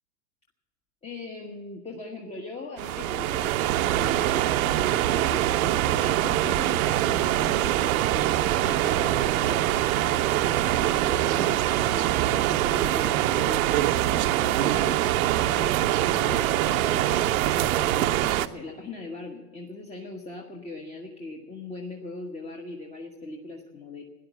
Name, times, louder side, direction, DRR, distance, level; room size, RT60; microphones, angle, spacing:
voice 1, 1.0-13.9 14.4-15.0 15.4-24.0, left 3 dB, 15° left, 0 dB, 1.2 m, -39 dB
sound 1, 2.8-18.5, right 13 dB, 65° right, 0.8 m, -24 dB
12.5 x 11.0 x 9.3 m, 1.2 s
hypercardioid pair, 120°, 46 cm